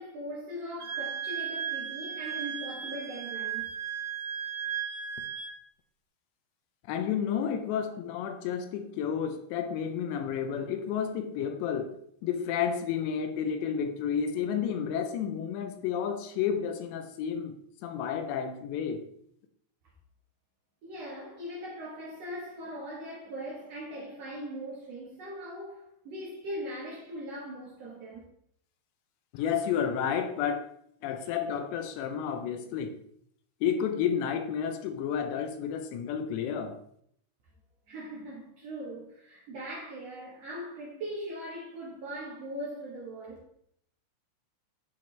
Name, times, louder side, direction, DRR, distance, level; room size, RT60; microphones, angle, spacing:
voice 1, 0.0-3.7 20.8-28.2 37.9-43.4, equal, 90° right, 1.4 m, -40 dB
Wind instrument woodwind instrument, 0.8-5.5, right 8 dB, 60° right, 1.2 m, -35 dB
voice 2, 6.9-11.9 12.2-17.6 17.8-19.1 29.3-30.7 31.0-32.9 33.6-36.8, left 8 dB, 85° left, 2.9 m, -31 dB
10.0 x 4.6 x 3.2 m
omnidirectional pair, 5.1 m